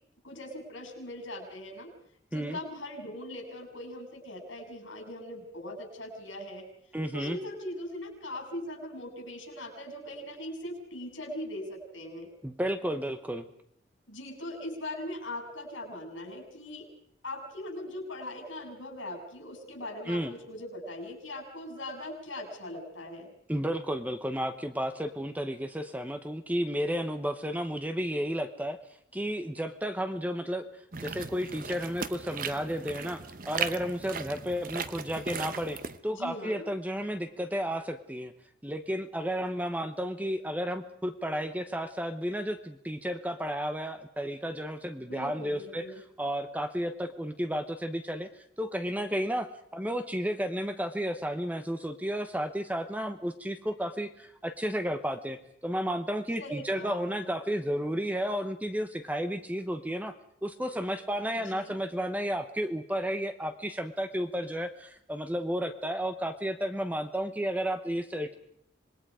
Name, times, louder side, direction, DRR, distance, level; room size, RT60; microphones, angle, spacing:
voice 1, 0.2-1.9 2.3-6.7 7.1-12.3 14.1-16.8 17.2-23.3 36.1-36.7 45.1-46.0 56.4-57.3 61.3-61.8, left 1 dB, 80° left, 3 dB, 6.6 m, -40 dB
voice 2, 6.9-7.4 12.4-13.5 20.1-20.3 23.5-28.8 29.1-30.7 31.0-35.8 36.0-38.3 38.6-45.8 46.2-48.3 48.6-60.1 60.4-68.4, equal, 10° right, 8 dB, 1.0 m, -32 dB
sound 1, 30.9-36.0, right 6 dB, 45° right, 0.9 m, -37 dB
26.5 x 20.5 x 5.0 m, 0.69 s
head